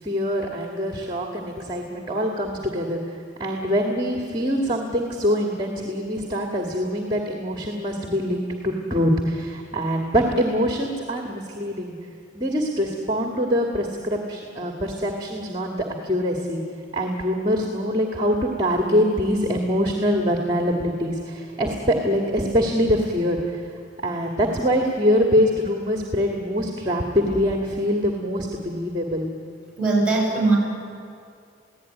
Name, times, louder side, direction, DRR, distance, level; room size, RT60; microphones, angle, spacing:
voice 1, 0.0-11.9 12.3-16.6 16.9-23.6 24.0-29.3, equal, 25° right, 1 dB, 2.1 m, -24 dB
voice 2, 29.8-30.6, right 3 dB, 5° right, -2 dB, 7.8 m, -20 dB
29.0 x 17.0 x 9.4 m, 2.4 s
head